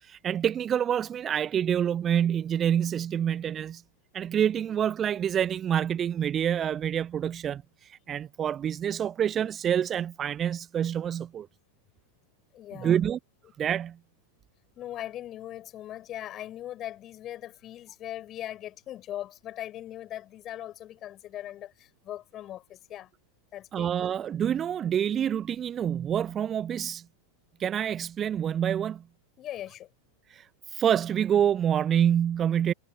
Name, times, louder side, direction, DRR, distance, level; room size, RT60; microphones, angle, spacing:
voice 1, 0.0-3.8 4.1-11.5 12.8-13.2 13.6-14.0 23.7-27.0 27.6-29.0 30.3-32.7, right 9 dB, 25° right, 0.7 m, -27 dB
voice 2, 12.5-13.0 14.7-23.1 23.5-23.9 29.4-29.9, left 12 dB, 30° left, 6.5 m, -40 dB
figure-of-eight pair, 90°, 0 cm